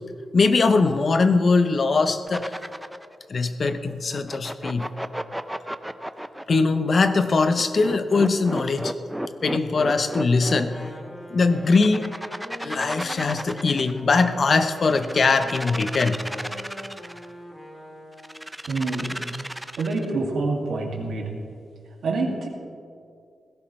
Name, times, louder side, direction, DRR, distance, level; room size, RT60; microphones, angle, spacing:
voice 1, 0.3-2.5 3.3-4.9 6.5-8.9 9.4-10.8 11.3-12.2 12.6-16.2, left 4 dB, 45° left, 9 dB, 0.7 m, -21 dB
sound 1, 2.3-3.1 4.1-6.6 7.5-10.9 11.6-14.0 14.8-17.3 18.2-20.1, right 1 dB, 5° right, 0.4 m, -33 dB
Wind instrument woodwind instrument, 10.5-18.5, left 1 dB, 20° left, 1.3 m, -42 dB
voice 2, 18.7-19.1 19.8-21.3 22.0-22.5, right 3 dB, 80° right, 0 dB, 2.1 m, -26 dB
17.5 x 16.0 x 3.2 m, 2.4 s
wide cardioid pair, 150°, 0 cm